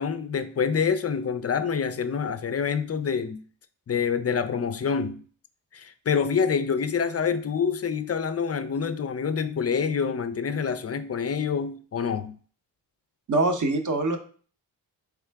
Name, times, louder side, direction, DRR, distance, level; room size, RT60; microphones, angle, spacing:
voice 1, 0.0-3.4 3.9-5.2 5.7-12.4, left 6 dB, 35° left, 0.4 m, -26 dB
voice 2, 13.3-14.2, right 2 dB, 40° right, 0.8 m, -23 dB
3.6 x 3.5 x 3.4 m
cardioid pair, 50°, 46 cm